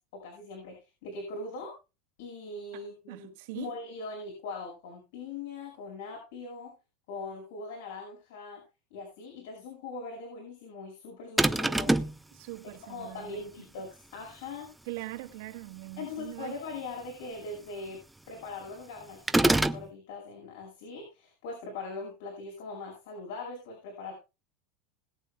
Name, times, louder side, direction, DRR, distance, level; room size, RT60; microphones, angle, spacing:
voice 1, 0.1-1.7 2.2-3.3 3.5-6.7 7.1-8.6 8.9-12.0 12.6-14.7 16.0-18.0 18.3-24.1, left 3 dB, 80° left, 5.6 m, -41 dB
voice 2, 2.7-3.7 12.3-13.4 14.9-16.6, right 19 dB, 70° right, 2.1 m, -42 dB
sound 1, 11.4-12.2 19.3-19.9, right 1 dB, 5° right, 0.5 m, -24 dB
20.5 x 8.6 x 2.3 m
supercardioid pair, 160°, 0 cm